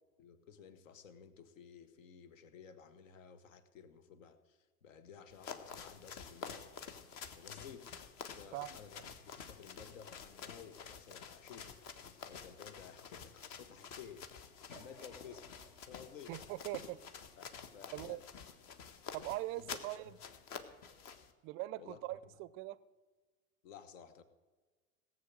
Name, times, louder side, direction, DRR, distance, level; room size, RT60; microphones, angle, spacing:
voice 1, 0.2-6.7 7.4-7.9 8.3-11.8 12.2-15.6 15.9-16.4 17.4-18.2 19.3-19.8 20.0-20.1 21.8-22.0 23.6-24.2, left 7 dB, 60° left, 11 dB, 1.5 m, -54 dB
sound 1, 5.3-21.3, left 6 dB, 40° left, 1.4 m, -50 dB
sound 2, 14.7-17.8 18.3-18.4, equal, 80° left, 5.8 m, -61 dB
voice 2, 16.3-17.0 17.9-18.2 19.1-20.1 21.4-22.8, right 17 dB, 30° right, 19 dB, 0.5 m, -41 dB
17.5 x 7.7 x 7.5 m, 1.3 s
figure-of-eight pair, 85°, 43 cm